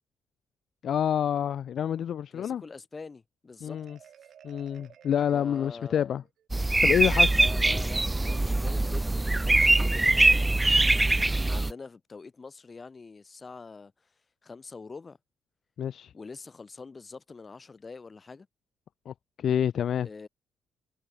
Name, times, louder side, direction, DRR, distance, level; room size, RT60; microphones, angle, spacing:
voice 1, 0.8-2.6 3.6-4.0 4.4-6.2 6.8-7.4 15.8-16.1 19.1-20.1, left 9 dB, 60° left, 0.7 m, -28 dB
voice 2, 2.3-4.3 5.3-6.2 7.3-10.6 11.5-14.1 14.4-15.2 16.1-18.5 20.0-20.3, left 4 dB, 30° left, 5.6 m, -45 dB
Marimba xylophone, 3.7-6.5, right 9 dB, 65° right, 7.2 m, -55 dB
sound 1, 6.5-11.7, right 2 dB, 15° right, 0.7 m, -23 dB
cardioid pair, 90°, 0 cm